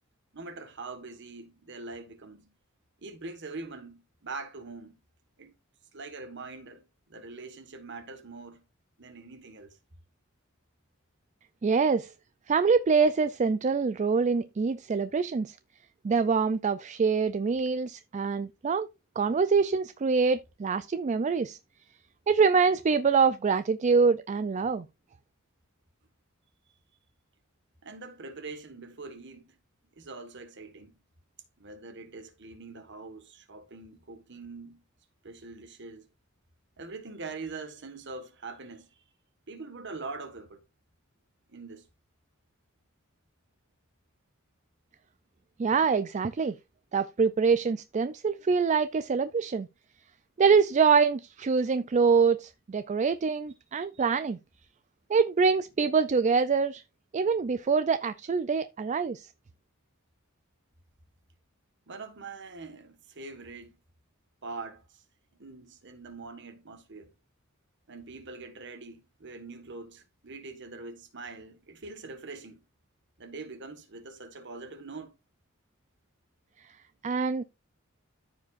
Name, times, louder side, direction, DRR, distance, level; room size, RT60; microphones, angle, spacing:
voice 1, 0.3-2.5 3.0-5.0 5.4-5.5 5.9-8.6 9.0-9.8 27.8-29.6 29.9-30.9 31.6-34.8 35.2-36.1 36.8-39.0 39.5-40.6 41.5-41.8 53.8-54.1 61.9-63.8 64.4-65.0 65.4-67.1 67.9-72.6 73.2-75.1, right 3 dB, 55° right, 1.5 m, -43 dB
voice 2, 11.6-12.1 12.5-15.6 16.0-18.9 19.2-21.6 22.3-24.9 45.6-46.5 46.9-49.7 50.4-54.4 55.1-56.8 57.1-59.3 77.0-77.4, right 5 dB, 35° right, 0.4 m, -25 dB
14.0 x 4.9 x 2.5 m
head